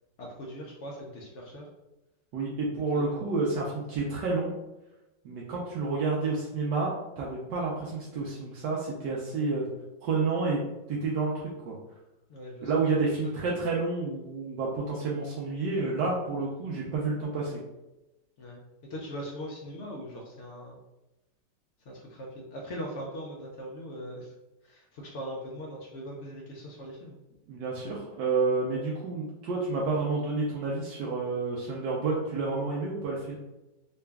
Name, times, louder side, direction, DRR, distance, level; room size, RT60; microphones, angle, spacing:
voice 1, 0.2-1.7 2.8-3.2 3.5-3.7 12.3-12.7 13.0-13.1 18.4-18.6 18.9-20.8 21.9-24.3 24.6-27.2, equal, 65° left, -2 dB, 0.7 m, -40 dB
voice 2, 2.3-4.5 5.2-9.7 10.0-10.6 10.9-11.7 12.6-17.6 27.5-33.4, right 3 dB, 80° right, -4 dB, 1.3 m, -29 dB
3.9 x 2.3 x 3.4 m, 0.97 s
omnidirectional pair, 1.9 m